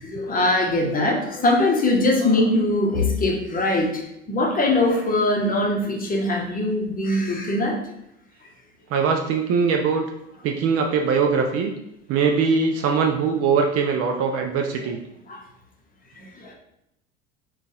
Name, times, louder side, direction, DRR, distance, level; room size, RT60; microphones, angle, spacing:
voice 1, 0.1-3.9 4.3-7.8 12.2-12.3, left 2 dB, 25° left, 0 dB, 0.9 m, -21 dB
voice 2, 8.9-10.0 10.4-11.7 12.1-15.0, right 5 dB, 40° right, 3 dB, 0.5 m, -21 dB
3.8 x 2.4 x 3.7 m, 0.82 s
figure-of-eight pair, 75°, 36 cm